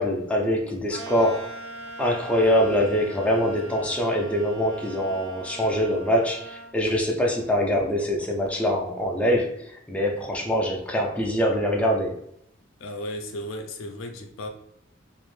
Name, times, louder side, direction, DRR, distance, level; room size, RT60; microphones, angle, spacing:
voice 1, 0.0-1.5 2.0-12.2, equal, 5° left, 0.3 m, -24 dB
sound 1, 0.9-6.7, right 2 dB, 85° right, 0.5 m, -41 dB
voice 2, 12.8-14.5, left 1 dB, 85° left, 0.5 m, -35 dB
2.5 x 2.0 x 3.1 m
head